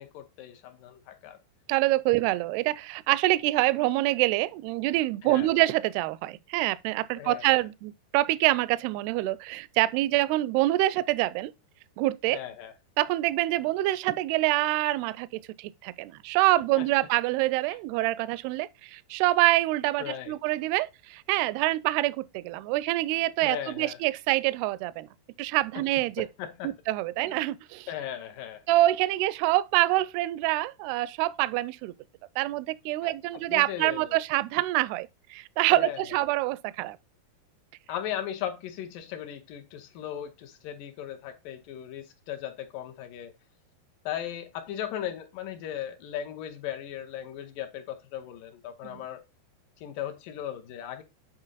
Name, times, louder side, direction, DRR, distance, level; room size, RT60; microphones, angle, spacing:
voice 1, 0.0-1.4 2.1-2.2 5.2-5.5 7.2-7.6 12.3-12.7 16.8-16.9 20.0-20.3 23.4-24.0 25.8-25.9 26.2-26.7 27.2-27.4 27.9-28.6 33.5-34.2 35.7-36.0 37.9-43.3 44.1-49.2 49.8-51.0, left 10 dB, 80° left, 2.0 m, -37 dB
voice 2, 1.7-11.5 12.0-12.4 13.0-25.1 25.4-26.3 26.6-27.9 28.7-31.9 32.4-37.0 48.8-49.0, right 17 dB, 85° right, 2.4 m, -26 dB
8.7 x 4.4 x 4.0 m
omnidirectional pair, 4.9 m